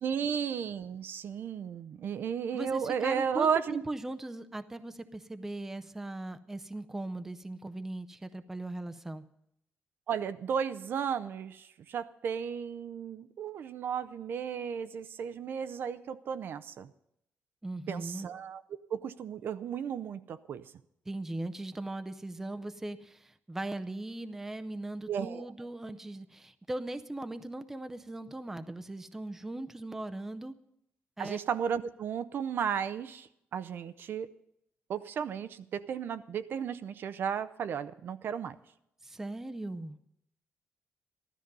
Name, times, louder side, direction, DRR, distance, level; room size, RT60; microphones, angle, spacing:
voice 1, 0.0-3.8 10.1-16.9 17.9-18.6 18.9-20.6 25.1-25.5 31.2-34.3 34.9-38.6, right 7 dB, 55° right, 11 dB, 0.5 m, -34 dB
voice 2, 2.5-9.2 17.6-18.3 21.1-30.6 31.2-31.4 39.0-40.0, right 2 dB, 10° right, 9 dB, 0.5 m, -39 dB
14.5 x 13.0 x 5.3 m, 0.77 s
wide cardioid pair, 180°, 4 cm